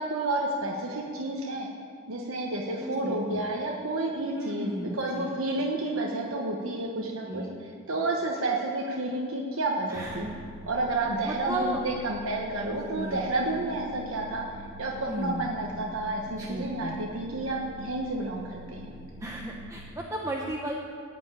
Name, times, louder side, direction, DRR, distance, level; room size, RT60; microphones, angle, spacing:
voice 1, 0.0-1.7 2.1-10.3 10.7-14.5 14.8-18.9, right 2 dB, 85° right, -1 dB, 1.1 m, -30 dB
voice 2, 2.8-3.4 4.3-5.3 7.0-7.5 9.9-10.4 11.2-11.8 13.0-13.3 15.1-15.5 16.4-17.0 19.2-20.7, right 1 dB, 15° right, -2 dB, 0.8 m, -35 dB
sound 1, 10.0-20.0, right 1 dB, 35° right, 1.2 m, -46 dB
13.5 x 5.2 x 9.1 m, 2.4 s
head